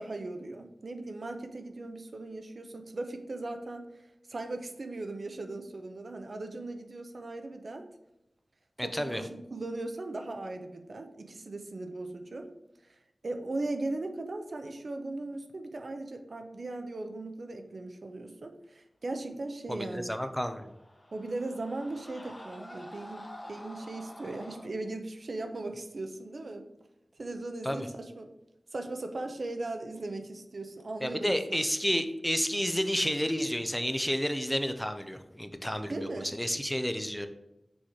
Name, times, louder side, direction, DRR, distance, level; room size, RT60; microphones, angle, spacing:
voice 1, 0.0-3.9 4.3-7.8 8.8-12.5 13.2-20.1 21.1-26.7 27.2-28.3 28.7-31.6 35.9-36.3, right 2 dB, 65° right, 6 dB, 0.7 m, -38 dB
voice 2, 8.8-9.2 19.7-20.7 27.6-27.9 31.0-37.3, equal, 5° left, 8 dB, 0.6 m, -31 dB
Screaming, 20.3-24.7, left 1 dB, 30° left, 1.2 m, -48 dB
6.3 x 3.2 x 5.7 m, 0.91 s
wide cardioid pair, 65°, 0 cm